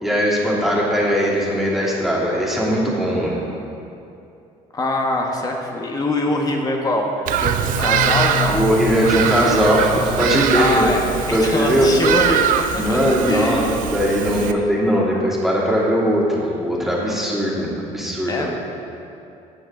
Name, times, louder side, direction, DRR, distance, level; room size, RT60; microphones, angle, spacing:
voice 1, 0.0-3.4 8.5-10.9 11.3-11.9 12.7-18.5, equal, ahead, -7 dB, 2.8 m, -19 dB
voice 2, 4.7-7.1 7.4-8.6 10.5-11.0 11.3-13.0 13.3-13.7 14.3-14.6 18.3-18.5, left 2 dB, 25° left, 0 dB, 1.4 m, -23 dB
Bird vocalization bird call bird song, 7.3-14.5, right 9 dB, 65° right, 0.5 m, -23 dB
sound 1, 7.6-10.3, left 4 dB, 40° right, 2.1 m, -28 dB
17.5 x 6.3 x 3.9 m, 2.7 s
cardioid pair, 115°, 15 cm